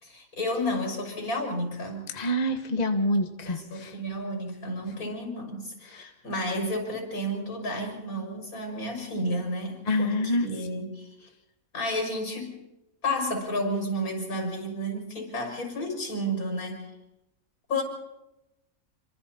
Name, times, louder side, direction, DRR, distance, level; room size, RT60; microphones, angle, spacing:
voice 1, 0.0-2.1 3.4-11.3 11.7-12.5 13.0-16.9 17.7-17.8, equal, 90° left, 2 dB, 6.5 m, -31 dB
voice 2, 2.1-3.9 9.9-10.5, left 1 dB, 30° left, 6 dB, 1.4 m, -26 dB
27.5 x 25.0 x 4.3 m, 0.93 s
omnidirectional pair, 1.5 m